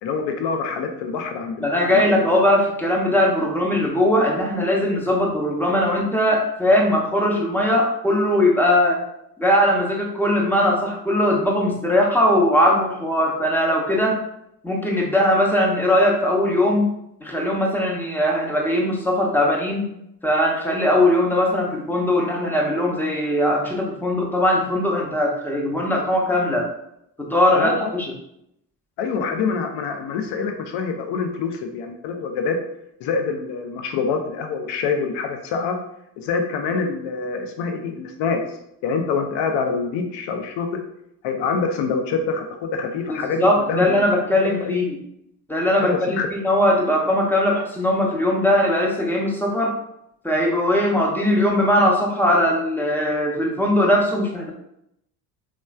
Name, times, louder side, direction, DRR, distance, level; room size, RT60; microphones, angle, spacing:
voice 1, 0.0-2.4 27.5-27.9 29.0-32.6 33.0-35.8 36.2-38.4 38.8-40.7 41.2-44.0 44.4-44.8 45.8-46.3, left 5 dB, 65° left, 5 dB, 0.6 m, -26 dB
voice 2, 1.6-9.0 9.4-14.2 14.6-16.9 17.2-19.9 20.2-26.7 27.2-28.1 43.1-45.0 45.5-49.8 50.2-54.5, left 1 dB, 5° left, -1 dB, 0.6 m, -20 dB
3.0 x 2.2 x 2.2 m, 0.79 s
hypercardioid pair, 55°, 48 cm